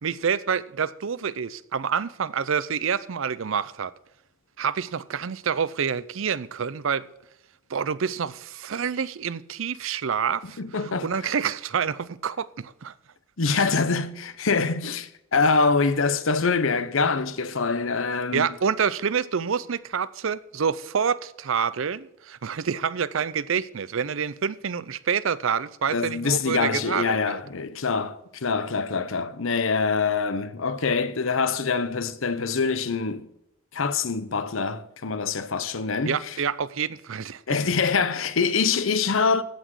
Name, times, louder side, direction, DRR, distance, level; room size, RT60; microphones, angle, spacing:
voice 1, 0.0-3.9 4.6-7.1 7.7-12.9 13.5-13.7 18.3-27.4 36.0-37.6, right 6 dB, 70° right, 0.5 m, -27 dB
voice 2, 10.6-11.1 13.4-18.5 25.9-33.3 33.7-36.4 37.5-39.4, left 4 dB, 70° left, 0.8 m, -25 dB
15.0 x 6.1 x 6.3 m
head